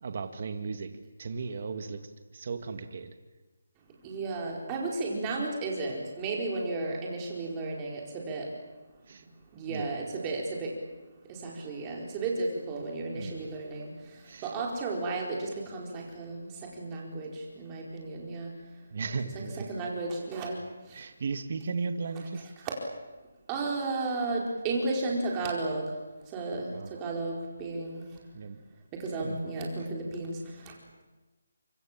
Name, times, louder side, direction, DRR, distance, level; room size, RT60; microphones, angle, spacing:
voice 1, 0.0-0.9 1.2-2.0 2.3-3.1 9.1-9.2 9.7-9.9 13.1-13.4 14.2-14.5 18.9-19.7 20.9-22.5 26.7-27.0 28.3-28.6 29.2-29.4 29.8-29.9, right 4 dB, 40° right, 7 dB, 1.9 m, -36 dB
voice 2, 4.0-8.5 9.5-10.7 11.3-13.9 14.4-16.4 16.8-17.3 17.6-18.5 19.3-20.6 23.5-25.9 26.3-28.0 28.9-30.4, right 3 dB, 15° right, -1 dB, 4.5 m, -33 dB
26.0 x 25.5 x 7.5 m, 1.2 s
hypercardioid pair, 170°, 0 cm